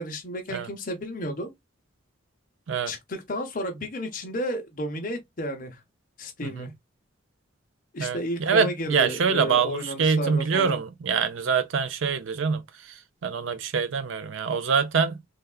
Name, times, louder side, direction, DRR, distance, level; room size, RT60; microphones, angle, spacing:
voice 1, 0.0-1.5 2.9-5.8 6.2-6.7 7.9-10.8, equal, 40° left, 0.7 m, -32 dB
voice 2, 8.0-12.6 13.2-15.2, right 6 dB, 70° right, 0.4 m, -25 dB
3.4 x 2.3 x 2.3 m
head